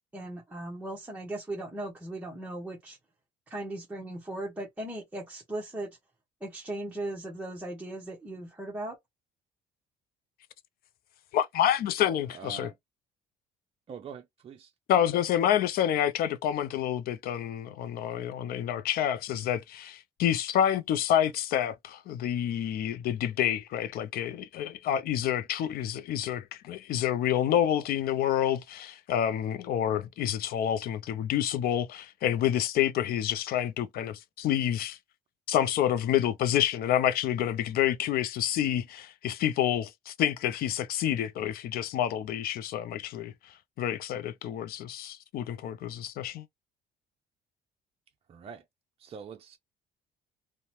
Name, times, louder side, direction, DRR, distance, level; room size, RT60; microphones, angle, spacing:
voice 1, 0.1-3.0 3.5-5.9 6.4-9.0, right 1 dB, 10° right, 0.8 m, -37 dB
voice 2, 11.3-12.7 14.9-35.0 35.5-46.5, left 10 dB, 65° left, 0.4 m, -28 dB
voice 3, 12.3-12.8 13.9-14.7 48.3-48.6 49.0-49.6, right 7 dB, 35° right, 0.5 m, -44 dB
2.7 x 2.1 x 3.0 m
cardioid pair, 110°, 17 cm